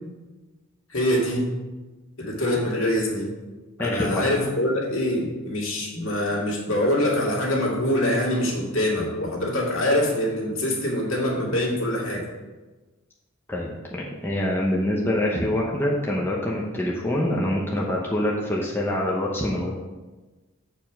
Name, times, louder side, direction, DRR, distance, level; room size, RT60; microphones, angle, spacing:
voice 1, 0.9-1.5 2.2-3.3 3.8-12.2, left 1 dB, 70° left, -3 dB, 2.2 m, -24 dB
voice 2, 3.8-4.3 13.5-19.7, left 1 dB, 10° left, -4 dB, 0.8 m, -25 dB
8.0 x 4.7 x 5.1 m, 1.2 s
head